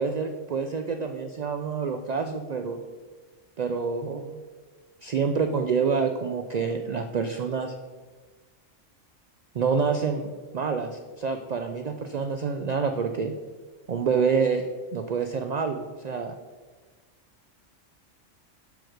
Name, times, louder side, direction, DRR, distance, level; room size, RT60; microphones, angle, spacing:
voice 1, 0.0-2.8 3.6-4.4 5.0-7.7 9.5-13.3 13.9-14.6 14.9-16.3, right 5 dB, 80° right, 6 dB, 0.3 m, -27 dB
5.9 x 4.7 x 6.4 m, 1.4 s
omnidirectional pair, 1.3 m